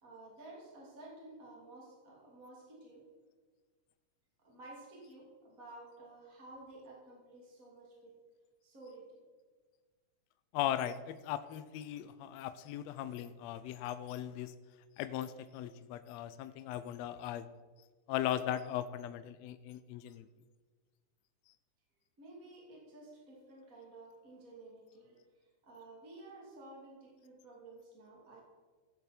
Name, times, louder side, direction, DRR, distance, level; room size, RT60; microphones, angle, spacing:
voice 1, 0.0-3.1 4.4-8.1 8.6-9.2 22.2-28.4, right 2 dB, 25° right, -4 dB, 3.2 m, -53 dB
voice 2, 10.5-14.5 15.0-17.4 18.1-20.3, left 11 dB, 80° left, 12 dB, 1.6 m, -38 dB
16.0 x 8.1 x 4.5 m, 1.5 s
omnidirectional pair, 3.5 m